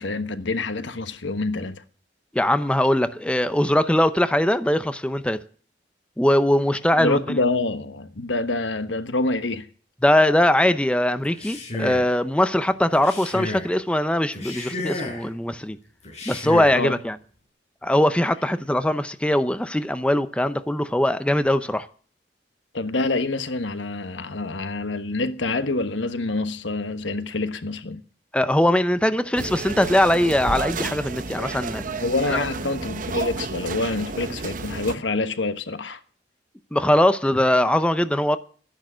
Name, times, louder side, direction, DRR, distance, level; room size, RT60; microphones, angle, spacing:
voice 1, 0.0-1.8 7.0-9.7 16.7-16.9 22.7-28.0 32.0-36.0, left 2 dB, 85° left, 1.3 m, -26 dB
voice 2, 2.3-5.4 6.2-7.4 10.0-15.8 16.3-17.2 17.8-21.9 28.3-31.8 32.3-32.4 36.7-38.4, left 1 dB, 5° left, 0.6 m, -21 dB
Male speech man speaking, 11.2-12.2 12.9-13.7 14.3-15.3 16.0-16.8, left 2 dB, 40° left, 6.1 m, -32 dB
sound 1, 29.4-35.0, right 3 dB, 45° right, 0.9 m, -31 dB
13.0 x 10.5 x 6.2 m
head